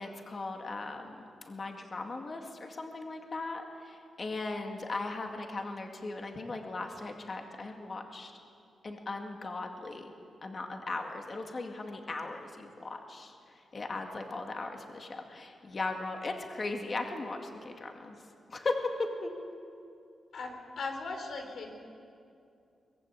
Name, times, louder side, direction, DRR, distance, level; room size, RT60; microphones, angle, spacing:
voice 1, 0.0-8.3 8.8-10.1 10.4-13.3 13.7-18.2 18.5-18.9 19.2-19.3, left 3 dB, 35° left, 3 dB, 2.1 m, -38 dB
voice 2, 20.3-21.7, left 3 dB, 70° left, 4 dB, 3.9 m, -38 dB
23.5 x 21.0 x 8.6 m, 2.5 s
wide cardioid pair, 140°, 0 cm